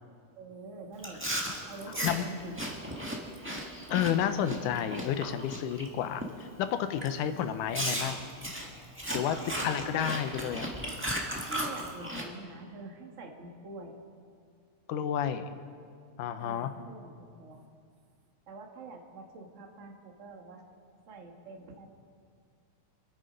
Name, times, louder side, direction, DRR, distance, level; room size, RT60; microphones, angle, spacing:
voice 1, 0.3-1.2 1.7-2.5 9.5-9.9 11.3-14.0 16.4-17.7 18.5-20.6 21.1-21.9, right 3 dB, 40° right, 2 dB, 1.1 m, -45 dB
Chewing mastication, 1.0-5.9 6.2-6.5 7.0-7.1 7.7-12.2, equal, 15° right, 0.3 m, -36 dB
voice 2, 3.9-8.2 9.1-9.4 9.6-10.7 14.9-15.6 16.2-16.7, left 9 dB, 90° left, 9 dB, 2.4 m, -31 dB
26.0 x 9.0 x 5.2 m, 2.2 s
omnidirectional pair, 3.6 m